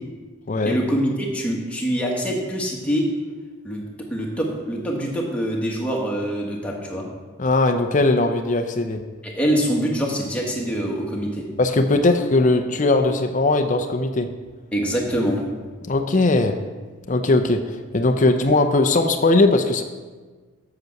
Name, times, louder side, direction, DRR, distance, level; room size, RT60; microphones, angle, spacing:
voice 1, 0.6-3.1 3.6-3.8 4.1-7.1 9.2-11.4 14.7-15.4, equal, 5° left, -2 dB, 1.4 m, -24 dB
voice 2, 7.4-9.0 11.6-14.3 15.9-16.6 17.1-17.6 17.9-19.8, left 2 dB, 40° left, 6 dB, 0.6 m, -19 dB
8.0 x 6.0 x 6.4 m, 1.4 s
head